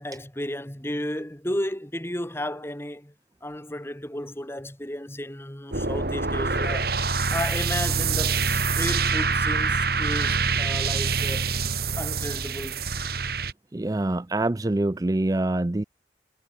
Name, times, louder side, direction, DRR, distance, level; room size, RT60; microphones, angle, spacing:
voice 1, 0.0-3.1 3.4-6.9 7.3-11.5 12.0-12.8, left 1 dB, 15° left, 2.3 m, -33 dB
sound 1, 5.7-13.5, right 4 dB, 55° right, 2.9 m, -25 dB
voice 2, 13.7-15.8, right 2 dB, 20° right, 0.4 m, -25 dB
head